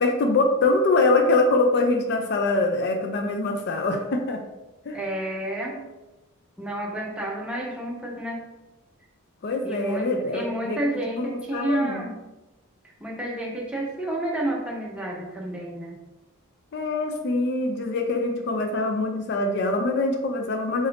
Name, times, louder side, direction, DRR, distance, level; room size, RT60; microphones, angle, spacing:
voice 1, 0.0-4.4 4.9-5.0 9.4-10.8 11.2-12.0 16.7-20.9, left 2 dB, 50° left, 4 dB, 0.4 m, -24 dB
voice 2, 4.9-5.8 6.6-8.4 9.6-12.2 13.0-16.0, right 1 dB, 5° right, -3 dB, 0.6 m, -30 dB
3.7 x 2.6 x 3.4 m, 1.0 s
head